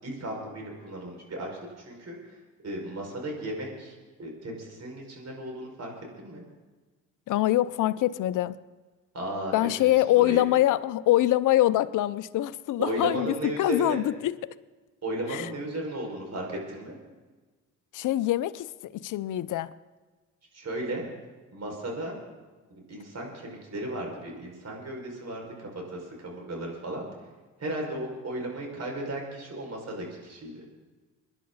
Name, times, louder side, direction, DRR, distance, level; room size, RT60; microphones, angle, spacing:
voice 1, 0.0-1.5 1.8-6.4 9.1-10.4 12.8-14.0 15.0-17.0 20.5-21.1 21.5-22.2 22.7-27.1 27.6-30.7, right 1 dB, 45° right, 5.9 m, -35 dB
voice 2, 7.3-8.6 9.5-13.3 13.6-14.3 15.3-15.4 17.9-19.7, left 14 dB, 60° left, 0.7 m, -24 dB
24.5 x 10.5 x 4.1 m
hypercardioid pair, 60°, 36 cm